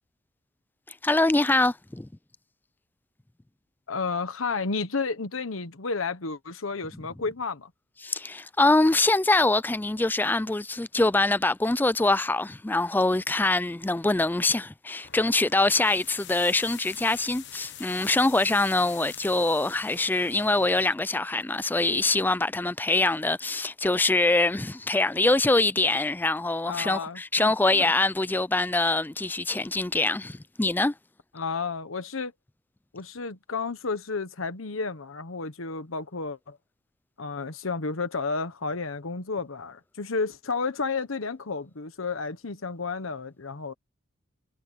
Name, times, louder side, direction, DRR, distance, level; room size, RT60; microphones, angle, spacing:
voice 1, 1.0-2.1 8.0-30.9, left 2 dB, 10° left, 0.4 m, -24 dB
voice 2, 3.9-7.7 26.7-27.2 27.7-27.9 31.3-32.3 32.9-36.6 37.2-43.7, left 4 dB, 90° left, 1.2 m, -31 dB
sound 1, 15.0-21.0, left 11 dB, 60° left, 1.2 m, -45 dB
head